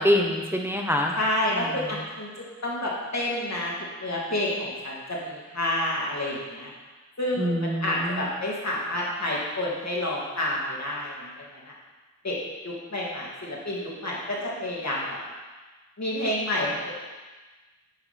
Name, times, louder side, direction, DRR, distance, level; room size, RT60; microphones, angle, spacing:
voice 1, 0.0-1.1 1.5-1.7 7.4-8.3, equal, 10° right, 1 dB, 0.9 m, -25 dB
voice 2, 1.1-2.3 2.6-3.7 4.0-6.7 7.2-11.3 12.2-12.4 12.6-15.2 16.0-17.0, left 1 dB, 65° left, -5 dB, 2.4 m, -29 dB
8.9 x 5.3 x 5.9 m, 1.3 s
wide cardioid pair, 65°, 30 cm